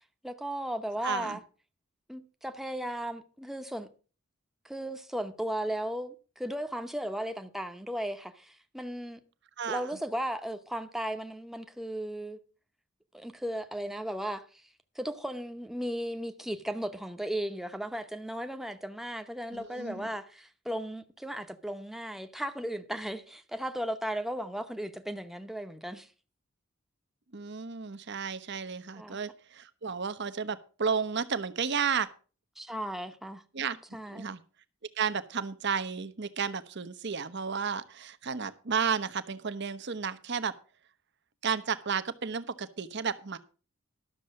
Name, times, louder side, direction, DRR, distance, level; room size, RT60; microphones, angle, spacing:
voice 1, 0.2-1.4 2.1-3.9 4.6-9.2 9.7-12.4 13.1-14.4 15.0-26.1 28.9-29.2 32.6-33.4 33.9-34.3, right 1 dB, ahead, 0.9 m, -36 dB
voice 2, 1.0-1.4 9.6-10.0 19.5-20.1 27.3-32.1 33.5-33.8 34.1-34.4 35.0-40.5 41.4-43.4, right 6 dB, 55° right, 0.9 m, -32 dB
12.5 x 6.8 x 6.3 m
head